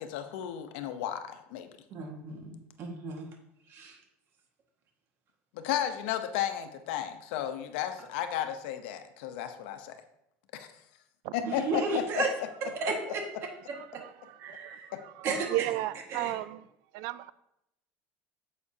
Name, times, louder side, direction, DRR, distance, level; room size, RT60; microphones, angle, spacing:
voice 1, 0.0-1.7 5.5-10.0 10.5-10.7 11.3-11.8 12.2-12.3 14.9-15.0, left 11 dB, 85° left, 8 dB, 0.9 m, -33 dB
voice 2, 1.9-3.3 3.7-4.0 11.4-12.3 12.6-13.2 13.7-14.0 14.4-14.9 15.2-15.7 16.1-16.4, right 3 dB, 45° right, 2 dB, 1.7 m, -34 dB
voice 3, 14.5-14.8 15.5-16.6 16.9-17.3, right 16 dB, 65° right, 17 dB, 0.4 m, -33 dB
9.5 x 7.4 x 2.8 m, 0.81 s
cardioid pair, 150°, 6 cm